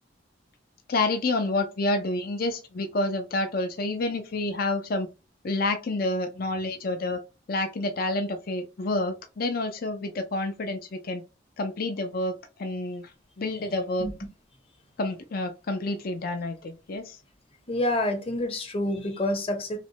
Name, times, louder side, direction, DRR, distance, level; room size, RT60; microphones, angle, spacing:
voice 1, 0.9-5.1 5.4-7.2 7.5-11.2 11.6-12.3 12.6-13.1 13.4-14.1 15.0-17.2, left 2 dB, 50° left, 0.5 m, -28 dB
voice 2, 17.7-19.8, left 1 dB, 30° left, 0.9 m, -27 dB
5.7 x 2.1 x 2.8 m
head